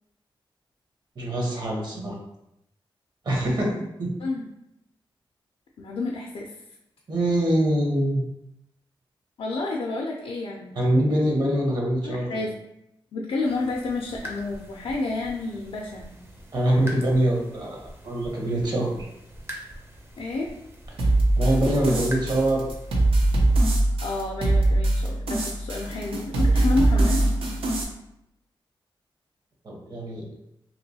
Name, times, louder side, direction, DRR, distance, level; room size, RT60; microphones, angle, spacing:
voice 1, 1.2-2.2 3.2-3.7 4.0-4.1 7.1-8.2 10.7-12.5 16.5-17.8 18.0-18.9 21.4-22.6 29.6-30.2, right 1 dB, 50° right, -1 dB, 0.9 m, -24 dB
voice 2, 4.2-4.5 5.8-6.5 9.4-10.8 12.0-12.5 13.1-16.1 20.2-20.5 24.0-27.2, left 2 dB, 80° left, -1 dB, 0.4 m, -30 dB
sound 1, 13.4-23.7, equal, 25° right, 0.5 m, -43 dB
sound 2, 21.0-27.8, right 1 dB, 85° right, 0.6 m, -22 dB
3.0 x 2.9 x 2.7 m, 0.84 s
wide cardioid pair, 120°, 9 cm